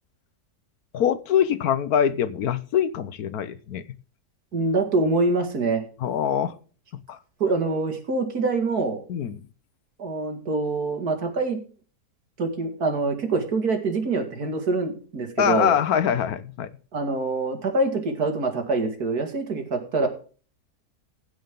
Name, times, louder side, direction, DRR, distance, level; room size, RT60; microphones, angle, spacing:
voice 1, 0.9-3.8 6.0-6.5 6.9-7.2 9.1-9.4 15.4-16.7, left 9 dB, 75° left, 1.3 m, -24 dB
voice 2, 4.5-5.8 7.4-9.0 10.0-11.6 12.4-15.7 16.9-20.1, right 3 dB, 75° right, 2.7 m, -25 dB
16.0 x 8.0 x 3.7 m
omnidirectional pair, 1.6 m